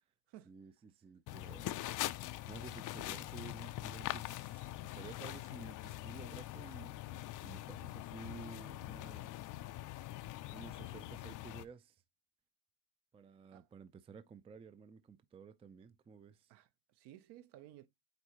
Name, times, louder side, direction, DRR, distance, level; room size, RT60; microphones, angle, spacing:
voice 1, 0.4-1.9 2.1-9.3 9.9-10.0 10.5-12.0 13.1-16.5, right 5 dB, 15° right, 0.4 m, -53 dB
sound 1, 1.3-11.7, left 15 dB, 45° left, 0.5 m, -43 dB
voice 2, 16.5-17.9, right 13 dB, 60° right, 0.8 m, -56 dB
8.3 x 4.0 x 2.9 m
supercardioid pair, 90°, 47 cm